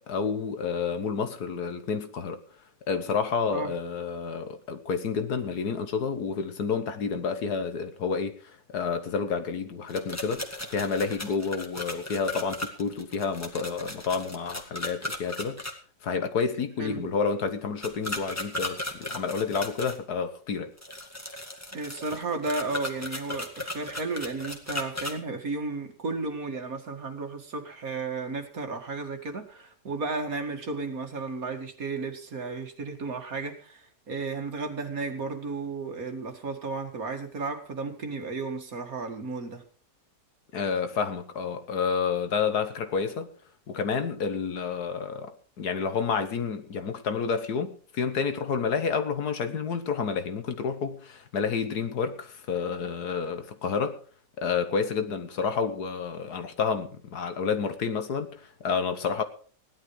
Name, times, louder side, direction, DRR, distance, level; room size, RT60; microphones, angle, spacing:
voice 1, 0.0-2.4 2.9-8.3 8.7-15.6 16.0-20.7 40.5-43.3 43.7-54.0 54.4-59.2, left 5 dB, 60° left, 1.7 m, -29 dB
sound 1, 9.9-15.7 17.8-20.0 20.8-25.1, left 1 dB, 10° left, 1.9 m, -36 dB
voice 2, 16.8-17.1 21.7-39.6, right 3 dB, 50° right, 2.3 m, -33 dB
17.0 x 11.5 x 4.7 m
omnidirectional pair, 1.9 m